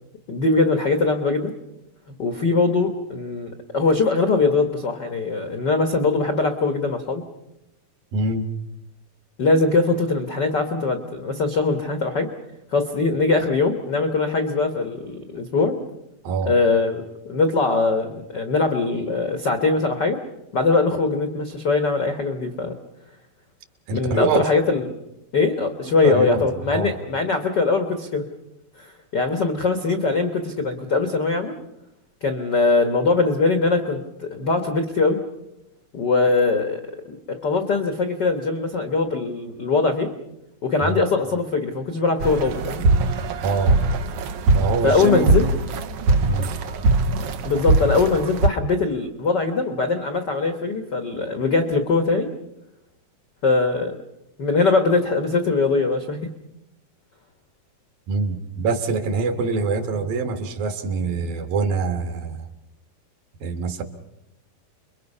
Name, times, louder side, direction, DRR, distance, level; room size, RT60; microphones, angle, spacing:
voice 1, 0.3-1.5 2.2-7.3 9.4-12.3 12.7-15.8 16.5-20.2 20.5-22.7 23.9-24.8 25.3-28.3 28.8-28.9 29.1-31.5 32.2-35.2 35.9-36.8 37.1-40.1 40.6-42.8 44.8-45.5 47.4-52.3 53.4-53.9 54.4-56.3, left 3 dB, 70° left, 6 dB, 1.0 m, -21 dB
voice 2, 8.1-8.5 16.2-16.6 23.9-24.5 26.0-26.4 26.7-27.0 40.8-41.0 43.4-43.8 44.5-45.4 46.2-46.5 58.1-62.5 63.4-63.8, right 4 dB, 75° right, 7 dB, 3.3 m, -24 dB
sound 1, 42.2-48.5, right 2 dB, 90° right, 1.3 m, -21 dB
29.5 x 22.5 x 5.5 m, 0.89 s
omnidirectional pair, 4.2 m